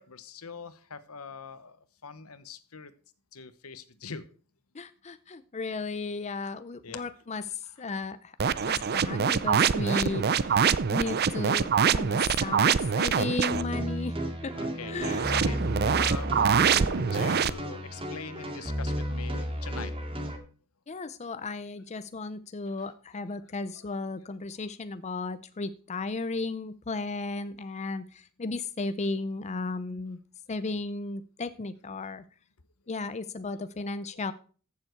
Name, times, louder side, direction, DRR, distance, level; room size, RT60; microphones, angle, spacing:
voice 1, 0.0-2.9 3.3-4.3 6.4-7.1 14.6-20.1 22.7-22.8 23.3-23.9 33.5-33.7, left 4 dB, 75° left, 1.1 m, -43 dB
voice 2, 4.7-8.3 8.6-10.6 10.9-14.1 14.4-14.5 14.9-15.2 20.9-30.2 30.5-32.2 32.9-34.3, left 3 dB, 30° left, 0.5 m, -34 dB
sound 1, 8.4-13.6 15.0-17.5, right 7 dB, 45° right, 0.5 m, -25 dB
sound 2, 13.5-20.4, equal, 25° right, 2.0 m, -33 dB
14.5 x 7.1 x 4.5 m
head